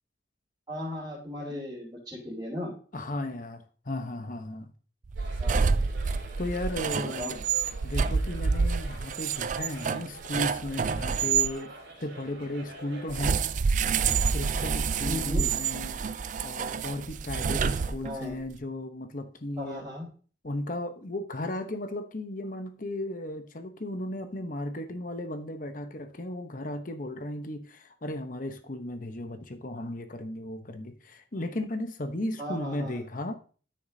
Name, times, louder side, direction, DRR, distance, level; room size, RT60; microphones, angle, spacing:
voice 1, 0.7-2.7 5.4-5.7 7.0-7.3 15.0-15.5 18.0-18.3 19.6-20.1 32.4-33.0, left 1 dB, 20° right, -9 dB, 3.5 m, -36 dB
voice 2, 2.9-4.7 6.1-7.4 7.8-11.7 12.0-13.4 14.3-16.0 16.4-19.8 20.4-33.3, left 1 dB, 45° left, 8 dB, 0.9 m, -35 dB
sound 1, 5.1-11.5 13.1-18.3, right 5 dB, 40° right, 0.3 m, -28 dB
sound 2, 5.1-13.3, right 2 dB, 65° right, 3.2 m, -47 dB
13.0 x 6.5 x 2.8 m, 0.40 s
head